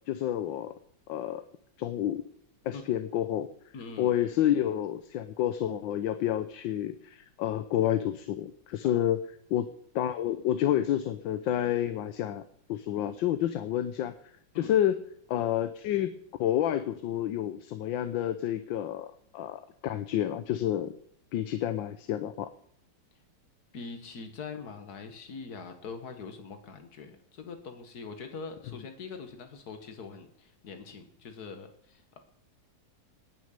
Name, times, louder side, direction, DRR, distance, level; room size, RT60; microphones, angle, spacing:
voice 1, 0.1-0.7 1.1-1.4 1.8-2.2 2.6-3.5 4.0-9.2 9.5-9.7 9.9-12.4 12.7-14.1 14.5-15.0 15.3-20.9 21.3-22.5, left 11 dB, 80° left, 11 dB, 1.5 m, -29 dB
voice 2, 3.7-4.2 8.8-9.0 14.5-14.7 23.7-32.2, left 4 dB, 55° left, 7 dB, 2.1 m, -43 dB
18.5 x 6.4 x 6.7 m, 0.70 s
omnidirectional pair, 2.1 m